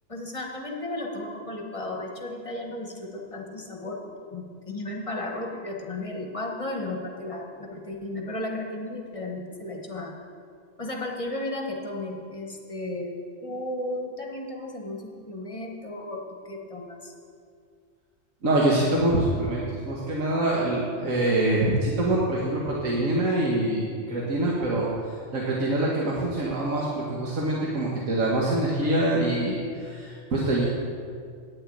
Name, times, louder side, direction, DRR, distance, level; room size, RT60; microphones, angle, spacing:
voice 1, 0.1-10.2 10.8-13.1 13.4-17.1, left 1 dB, 25° left, 1 dB, 1.2 m, -34 dB
voice 2, 18.4-24.9 25.3-30.6, right 1 dB, 75° right, -5 dB, 1.7 m, -25 dB
9.5 x 6.7 x 8.5 m, 2.2 s
omnidirectional pair, 1.4 m